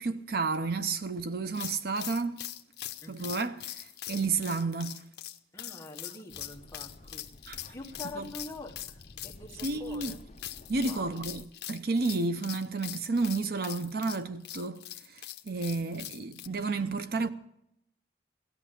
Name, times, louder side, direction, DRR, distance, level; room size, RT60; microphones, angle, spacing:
voice 1, 0.0-2.4 3.1-5.0 7.5-7.6 8.2-8.3 9.6-10.2 10.7-14.8 15.1-17.3, right 3 dB, 55° right, 0.6 m, -31 dB
sound 1, 1.5-16.5, left 13 dB, 60° left, 0.8 m, -42 dB
voice 2, 5.5-7.3 7.7-10.2 10.8-11.1, left 2 dB, 15° left, 1.4 m, -45 dB
sound 2, 6.3-11.4, left 1 dB, 35° left, 0.7 m, -52 dB
18.0 x 13.5 x 5.8 m
head